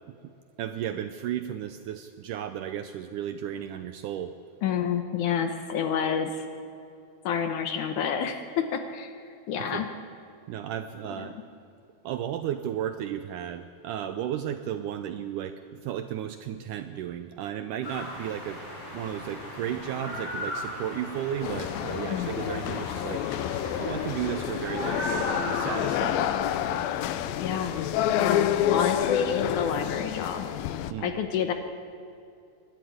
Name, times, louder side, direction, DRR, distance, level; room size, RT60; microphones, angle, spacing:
voice 1, 0.6-4.3 9.6-9.9 10.5-11.4 12.0-18.6 18.9-23.3 23.8-26.3 30.9-31.1, right 10 dB, 80° right, 9 dB, 1.9 m, -34 dB
voice 2, 4.6-6.4 7.2-9.1 9.5-9.9 11.2-11.3 22.1-22.4 27.4-27.9 28.2-30.5 31.0-31.5, left 7 dB, 70° left, 7 dB, 2.1 m, -29 dB
sound 1, 17.8-27.0, equal, 50° left, 6.9 m, -38 dB
sound 2, 21.4-30.9, left 11 dB, 85° left, 2.5 m, -28 dB
23.5 x 11.5 x 9.5 m, 2.5 s
omnidirectional pair, 4.2 m